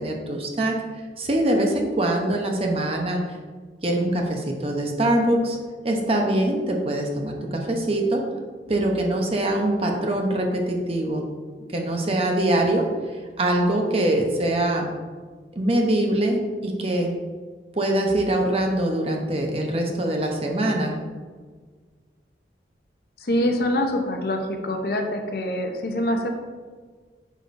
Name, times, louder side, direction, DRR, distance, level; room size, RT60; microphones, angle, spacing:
voice 1, 0.0-3.2 3.8-5.6 5.8-8.2 8.7-11.3 11.7-12.9 13.4-14.9 15.5-17.1 17.7-21.0, right 1 dB, 30° right, 1 dB, 0.8 m, -23 dB
voice 2, 23.2-26.3, left 1 dB, 55° left, 4 dB, 0.7 m, -25 dB
8.5 x 5.1 x 2.6 m, 1.5 s
head